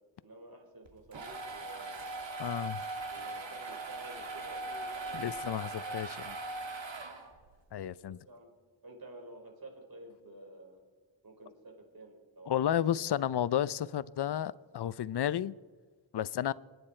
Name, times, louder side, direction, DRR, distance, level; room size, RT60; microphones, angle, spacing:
voice 1, 0.2-2.1 3.0-5.6 5.8-6.0 8.0-8.5 8.8-10.8 11.2-13.0, right 2 dB, 50° right, 2 dB, 4.9 m, -51 dB
sound 1, 0.9-7.5, right 2 dB, 70° right, 2.5 m, -40 dB
voice 2, 2.4-2.8 5.1-6.3 7.7-8.2 12.5-15.5 16.1-16.5, left 10 dB, 55° left, 17 dB, 0.7 m, -32 dB
29.0 x 9.9 x 4.5 m, 1.4 s
cardioid pair, 45°, 47 cm